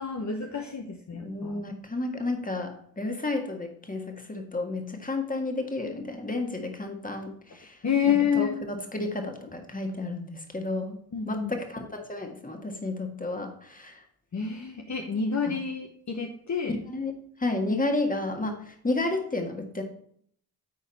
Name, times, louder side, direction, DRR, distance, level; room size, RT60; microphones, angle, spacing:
voice 1, 0.0-1.6 7.8-8.6 11.1-11.5 14.3-16.7, left 7 dB, 45° left, 3 dB, 1.0 m, -28 dB
voice 2, 1.2-11.0 11.2-14.0 15.5-15.6 16.7-17.1 17.4-19.8, left 2 dB, 20° left, 3 dB, 1.7 m, -32 dB
9.4 x 4.1 x 4.2 m, 0.65 s
supercardioid pair, 50°, 41 cm